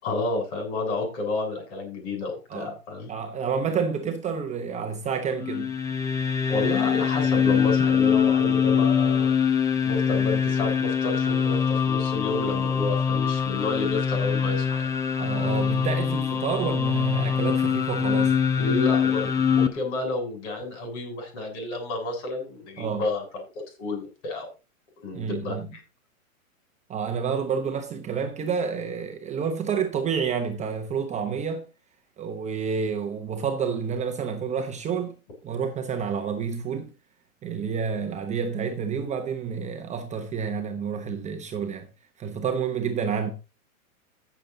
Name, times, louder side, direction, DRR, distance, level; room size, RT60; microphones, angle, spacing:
voice 1, 0.0-3.1 6.5-9.3 9.8-14.8 18.6-23.4 23.8-24.5 25.0-25.8, left 3 dB, 50° left, 7.7 m, -30 dB
voice 2, 3.1-5.7 15.2-18.4 22.8-23.1 25.1-25.7 26.9-31.7 32.2-35.1 35.4-36.9 37.4-41.9 42.2-43.3, right 6 dB, 15° right, 1.0 m, -29 dB
sound 1, 5.4-19.7, left 7 dB, 10° left, 0.5 m, -23 dB
15.0 x 7.2 x 3.9 m
hypercardioid pair, 135°, 43 cm